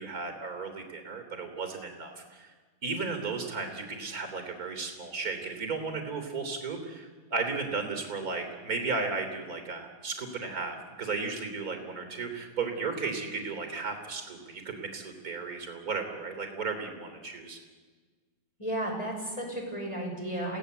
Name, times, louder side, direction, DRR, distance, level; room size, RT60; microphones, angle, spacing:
voice 1, 0.0-2.5 2.8-17.6, right 4 dB, 25° right, 6 dB, 3.6 m, -35 dB
voice 2, 18.6-20.6, right 1 dB, 10° left, 0 dB, 5.4 m, -33 dB
29.5 x 18.0 x 8.1 m, 1.4 s
omnidirectional pair, 3.6 m